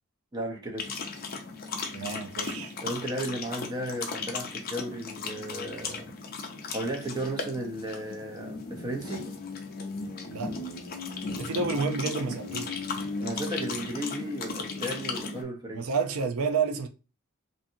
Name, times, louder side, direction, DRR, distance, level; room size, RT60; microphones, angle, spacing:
voice 1, 0.3-1.0 2.8-6.1 6.7-9.3 13.2-15.9, right 1 dB, 20° right, 0.5 m, -35 dB
sound 1, 0.8-15.4, left 4 dB, 45° left, 0.5 m, -36 dB
voice 2, 1.9-2.7 10.3-10.5 11.4-12.8 15.7-16.9, right 4 dB, 90° right, 0.5 m, -30 dB
2.6 x 2.5 x 2.6 m
head